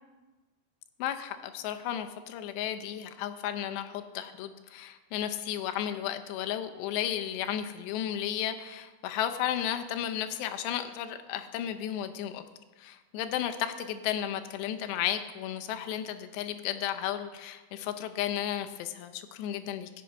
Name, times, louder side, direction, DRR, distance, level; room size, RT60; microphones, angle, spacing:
voice 1, 1.0-12.4 12.8-19.9, left 10 dB, 80° left, 8 dB, 2.7 m, -33 dB
16.5 x 7.5 x 5.3 m, 1.2 s
omnidirectional pair, 5.2 m